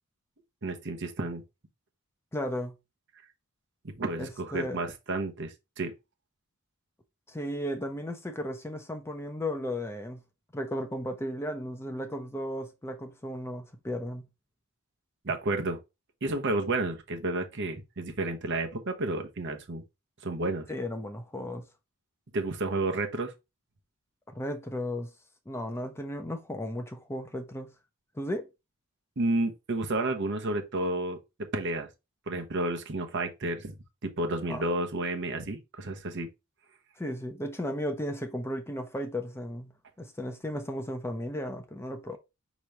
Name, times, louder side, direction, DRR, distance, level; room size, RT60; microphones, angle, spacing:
voice 1, 0.6-1.4 4.0-5.9 15.2-15.8 16.2-19.8 20.2-20.7 22.3-23.3 29.2-31.2 31.5-31.9 32.3-33.7 34.0-36.3, right 2 dB, 55° right, 0.9 m, -31 dB
voice 2, 2.3-2.7 4.2-4.8 7.3-10.2 10.5-14.3 20.7-21.6 24.3-25.1 25.5-27.7 28.2-28.5 34.5-34.6 37.0-42.2, equal, 10° left, 0.6 m, -35 dB
5.3 x 3.1 x 3.3 m
head